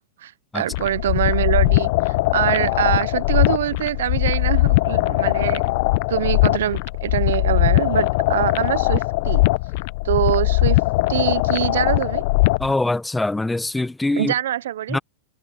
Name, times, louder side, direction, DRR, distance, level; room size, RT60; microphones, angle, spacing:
voice 1, 0.2-5.6 6.1-9.4 10.0-10.8 11.1-12.2 14.2-15.0, right 12 dB, 75° right, 0.5 m, -24 dB
sound 1, 0.7-12.7, left 21 dB, 50° left, 0.6 m, -20 dB
voice 2, 12.6-14.3 14.9-15.0, left 2 dB, 5° left, 0.7 m, -23 dB
supercardioid pair, 145°, 0 cm